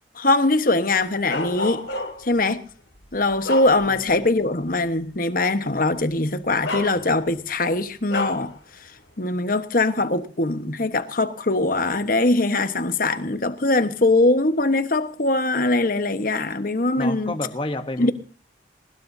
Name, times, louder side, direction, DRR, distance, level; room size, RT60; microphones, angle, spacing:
voice 1, 0.2-1.8 2.2-2.6 3.1-8.5 9.2-17.3 18.0-18.1, left 2 dB, 50° left, 1.3 m, -22 dB
Bark, 1.3-2.4 3.0-4.2 4.6-4.8 5.9-6.1 6.6-7.4 8.1-8.5, left 2 dB, 75° left, 2.9 m, -30 dB
voice 2, 17.0-18.1, left 1 dB, 30° left, 1.0 m, -29 dB
20.5 x 20.0 x 2.8 m
head